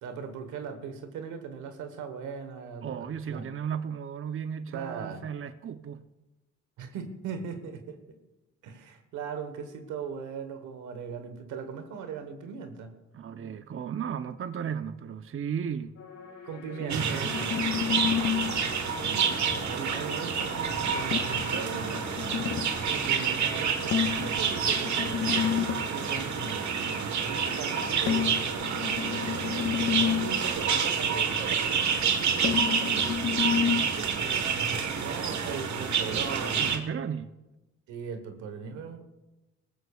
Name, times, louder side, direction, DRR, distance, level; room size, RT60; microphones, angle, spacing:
voice 1, 0.0-3.5 4.7-5.3 6.8-8.2 8.6-13.0 16.4-17.2 19.0-22.1 22.9-25.6 25.9-26.8 27.2-28.6 29.0-32.9 35.0-36.8 37.9-39.1, right 6 dB, 90° right, 1.3 m, -39 dB
voice 2, 2.8-6.0 13.1-15.9 16.8-17.5 33.6-34.3 36.6-37.3, right 7 dB, 45° right, 0.7 m, -35 dB
sound 1, 16.0-26.4, left 4 dB, 75° left, 3.7 m, -47 dB
sound 2, 16.9-36.8, right 6 dB, 70° right, 1.4 m, -28 dB
sound 3, 17.2-18.6 21.1-22.8 23.9-25.9 28.1-30.5 32.4-33.9, left 9 dB, 45° left, 0.6 m, -30 dB
22.5 x 14.5 x 2.4 m
supercardioid pair, 55°, 30 cm